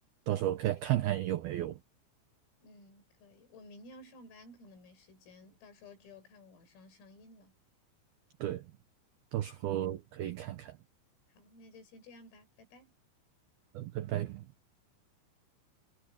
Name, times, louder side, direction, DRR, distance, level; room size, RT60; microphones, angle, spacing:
voice 1, 0.3-1.8 8.4-8.6 9.3-10.7 13.8-14.4, right 13 dB, 80° right, 2.2 m, -33 dB
voice 2, 2.6-7.5 9.3-9.4 11.3-12.9, left 2 dB, 90° left, 8.9 m, -55 dB
omnidirectional pair, 5.8 m